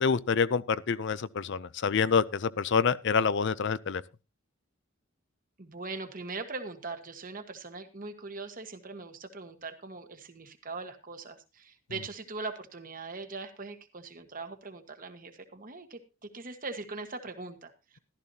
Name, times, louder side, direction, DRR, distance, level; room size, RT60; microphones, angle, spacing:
voice 1, 0.0-4.0, left 5 dB, 55° left, 0.5 m, -27 dB
voice 2, 5.6-18.0, right 3 dB, 40° right, 1.5 m, -41 dB
14.5 x 12.5 x 2.8 m
head